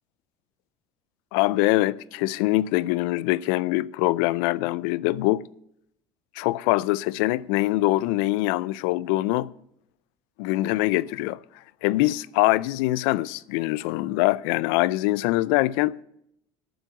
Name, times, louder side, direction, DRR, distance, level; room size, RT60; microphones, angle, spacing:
voice 1, 1.3-5.4 6.4-9.5 10.4-11.4 11.8-16.0, left 18 dB, 85° left, 0.4 m, -23 dB
9.1 x 7.5 x 9.0 m
cardioid pair, 120°, 12 cm